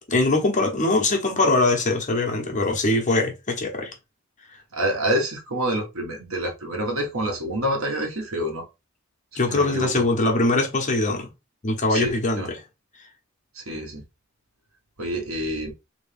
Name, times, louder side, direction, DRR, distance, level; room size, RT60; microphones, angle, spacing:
voice 1, 0.1-3.9 9.3-11.3 11.6-12.6, left 2 dB, 35° left, 1.1 m, -22 dB
voice 2, 4.7-8.6 9.5-10.0 11.9-12.5 13.5-14.0 15.0-15.7, right 1 dB, 80° right, 1.5 m, -27 dB
3.6 x 3.2 x 3.4 m
head